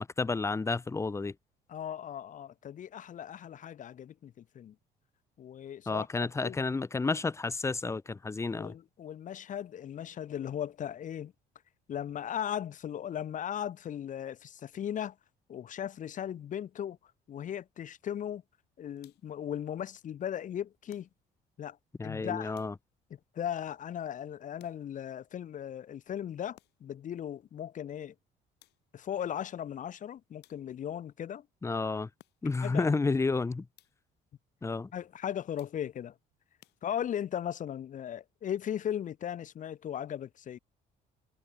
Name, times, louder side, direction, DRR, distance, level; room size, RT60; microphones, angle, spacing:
voice 1, 0.0-1.3 5.9-8.7 22.0-22.7 31.6-32.1 32.4-33.7 34.6-34.9, left 3 dB, 15° left, 0.8 m, -31 dB
voice 2, 1.7-4.7 5.4-6.6 8.6-11.3 11.9-15.2 15.5-18.4 18.8-21.1 21.6-21.8 22.0-22.6 23.1-28.1 28.9-31.5 32.6-32.9 34.9-36.2 36.8-40.6, left 10 dB, 50° left, 1.3 m, -37 dB
sound 1, 19.0-19.5 20.9-21.5 22.5-23.1 24.6-25.2 26.5-27.1 28.6-29.1 30.4-31.0 32.2-32.7 33.7-34.2 35.6-36.1 36.6-37.3, left 17 dB, 80° left, 5.5 m, -65 dB
cardioid pair, 110°, 17 cm